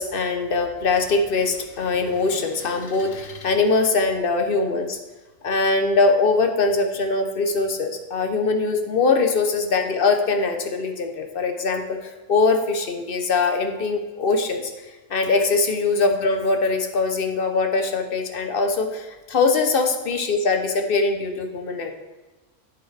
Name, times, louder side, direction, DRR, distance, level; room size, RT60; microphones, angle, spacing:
voice 1, 0.0-5.0 5.4-14.7 15.1-21.9, left 3 dB, 45° left, 5 dB, 0.8 m, -22 dB
8.1 x 8.1 x 3.3 m, 1.2 s
omnidirectional pair, 1.5 m